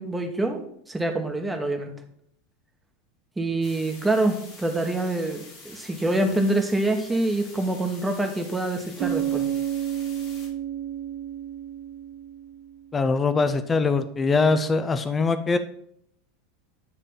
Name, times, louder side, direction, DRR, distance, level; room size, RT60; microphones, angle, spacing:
voice 1, 0.0-1.9 3.4-9.4, right 2 dB, 10° right, 3 dB, 1.2 m, -26 dB
sound 1, 3.6-10.5, left 3 dB, 55° left, 2.6 m, -46 dB
Bass guitar, 9.0-12.8, right 10 dB, 50° right, 0.4 m, -30 dB
voice 2, 12.9-15.6, left 4 dB, 25° left, 10 dB, 0.6 m, -22 dB
9.6 x 3.2 x 5.7 m, 0.69 s
figure-of-eight pair, 85°, 0 cm